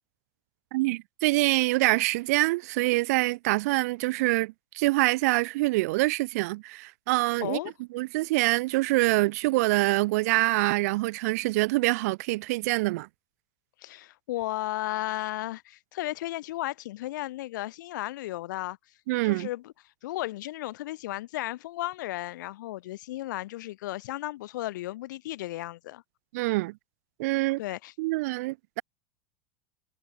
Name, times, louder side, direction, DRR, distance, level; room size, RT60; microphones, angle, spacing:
voice 1, 0.7-7.6 7.9-13.1 19.1-19.5 26.3-26.7 27.2-27.6 28.0-28.8, right 21 dB, 55° right, 0.5 m, -25 dB
voice 2, 7.4-7.7 13.8-18.8 19.2-19.7 20.0-26.0 27.6-27.9, left 16 dB, 75° left, 1.1 m, -34 dB
supercardioid pair, 180°, 10 cm